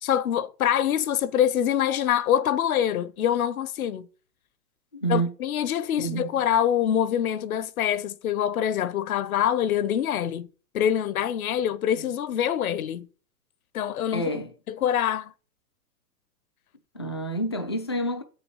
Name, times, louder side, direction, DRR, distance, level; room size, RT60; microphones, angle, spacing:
voice 1, 0.0-4.1 5.1-10.5 10.7-13.1 13.7-14.2 14.8-15.3, left 10 dB, 60° left, 1.0 m, -25 dB
voice 2, 4.9-5.3 6.0-6.5 11.9-12.2 14.1-14.5 16.9-18.2, right 2 dB, 20° left, 0.4 m, -29 dB
8.0 x 6.9 x 7.1 m
hypercardioid pair, 155°, 49 cm